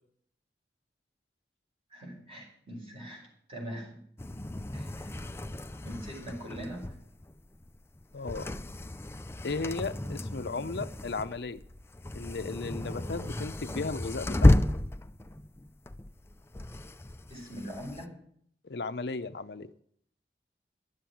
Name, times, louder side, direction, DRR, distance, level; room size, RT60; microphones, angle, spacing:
voice 1, 1.9-4.0 4.7-5.1 5.8-7.0 17.3-18.2, equal, 35° right, -1 dB, 5.3 m, -42 dB
sound 1, 4.2-18.0, left 1 dB, 15° left, 0.4 m, -32 dB
voice 2, 8.1-8.5 9.4-11.6 12.1-14.6 18.6-19.7, left 3 dB, 70° left, 11 dB, 0.6 m, -35 dB
11.5 x 7.8 x 8.6 m, 0.64 s
head